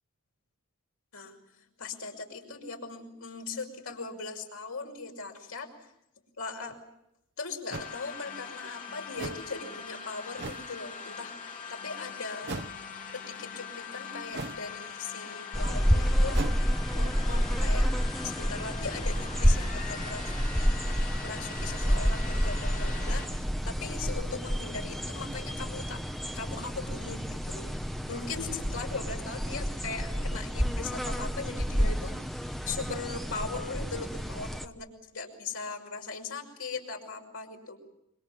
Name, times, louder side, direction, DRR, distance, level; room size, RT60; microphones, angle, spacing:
voice 1, 1.1-5.7 6.4-6.8 7.4-11.3 11.7-12.6 13.1-16.4 16.9-17.9 18.2-20.7 21.2-26.0 26.3-27.7 28.1-34.9 35.1-37.8, left 4 dB, 85° left, 2 dB, 5.9 m, -39 dB
sound 1, 6.7-6.8 7.7-7.9 9.2-9.5 10.4-10.7 12.4-12.8 14.3-14.7 16.3-16.6, right 3 dB, 50° right, 0.9 m, -38 dB
sound 2, 7.7-23.3, left 5 dB, 40° left, 3.1 m, -42 dB
sound 3, 15.5-34.7, equal, ahead, 1.0 m, -29 dB
27.0 x 25.0 x 7.4 m, 0.80 s
head